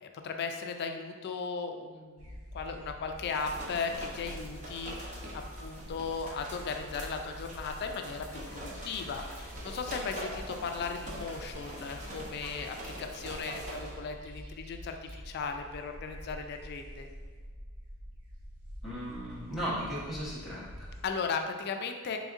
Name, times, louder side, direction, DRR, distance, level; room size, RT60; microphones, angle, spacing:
voice 1, 0.0-5.2 5.6-17.1 21.0-22.2, left 5 dB, 50° left, 5 dB, 0.3 m, -37 dB
sound 1, 2.2-21.1, equal, 70° right, 0.7 m, -47 dB
sound 2, 3.2-14.0, right 1 dB, 35° right, 0.7 m, -44 dB
voice 2, 18.8-20.9, equal, ahead, -9 dB, 0.8 m, -36 dB
3.9 x 3.5 x 2.4 m, 1.5 s
head